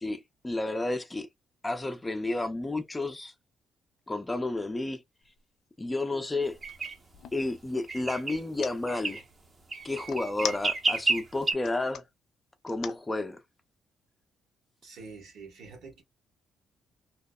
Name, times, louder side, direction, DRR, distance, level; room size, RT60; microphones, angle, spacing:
voice 1, 0.0-1.3 1.6-3.3 4.1-5.0 5.8-6.6 7.3-9.2 9.8-12.0 12.6-13.4, left 2 dB, 15° left, 0.4 m, -31 dB
sound 1, 5.2-5.4 5.8-7.4 8.3-8.7 10.1-11.1 11.5-12.0 12.7-13.0, left 8 dB, 75° left, 0.5 m, -39 dB
sound 2, 6.6-6.9 7.9-8.4 8.9-9.2 9.7-11.5, right 3 dB, 35° right, 0.7 m, -30 dB
voice 2, 14.8-16.0, right 4 dB, 80° right, 1.2 m, -46 dB
2.9 x 2.0 x 2.2 m
cardioid pair, 90°, 0 cm